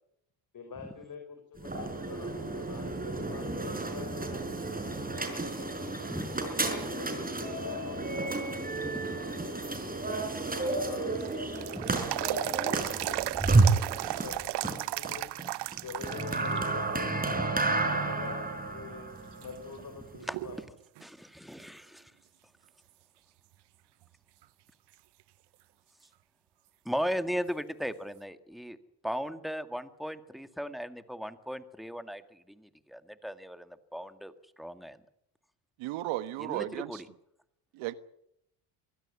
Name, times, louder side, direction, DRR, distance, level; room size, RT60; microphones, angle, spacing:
voice 1, 0.5-5.9 6.4-9.0 9.4-9.5 10.5-15.3 15.8-17.4 17.7-20.7, left 5 dB, 45° left, 4.5 m, -46 dB
sound 1, 1.6-20.6, right 3 dB, 20° right, 5.1 m, -31 dB
voice 2, 6.1-6.5 11.7-11.9 14.7-14.8 17.3-17.5 20.3-20.4 21.0-22.1 26.9-28.8 29.0-34.3 34.6-35.0 36.4-37.1, equal, ahead, 2.0 m, -37 dB
sound 2, 10.5-16.6 17.0-17.1 17.8-18.3 18.8-18.9 19.4-20.6 21.0-21.1 24.4-24.5 27.5-27.6, right 17 dB, 55° right, 0.7 m, -35 dB
voice 3, 35.8-37.0 37.7-37.9, right 16 dB, 75° right, 1.5 m, -34 dB
23.5 x 16.0 x 8.5 m
supercardioid pair, 75°, 48 cm